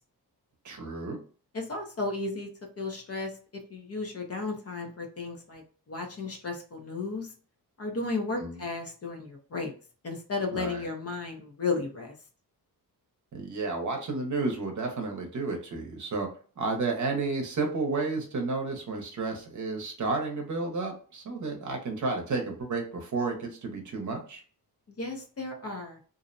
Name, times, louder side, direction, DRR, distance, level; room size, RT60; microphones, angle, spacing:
voice 1, 0.6-1.2 8.4-8.6 10.5-10.9 13.3-16.3 16.6-24.4, right 3 dB, 50° right, 2 dB, 0.8 m, -32 dB
voice 2, 1.5-2.5 2.8-7.3 7.8-9.7 10.0-12.1 24.9-26.0, left 3 dB, 40° left, 3 dB, 0.6 m, -34 dB
2.5 x 2.0 x 2.5 m, 0.40 s
wide cardioid pair, 150°, 39 cm